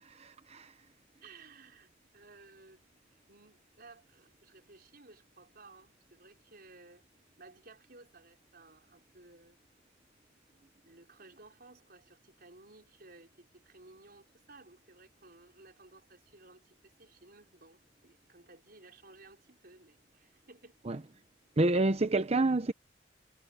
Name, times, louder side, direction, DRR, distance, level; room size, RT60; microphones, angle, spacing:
voice 1, 0.2-0.7 20.9-21.0 21.6-22.7, right 2 dB, 35° right, 0.8 m, -28 dB
voice 2, 1.2-2.8 3.1-7.0 7.4-9.6 10.8-20.7, right 3 dB, 55° right, 5.1 m, -57 dB
head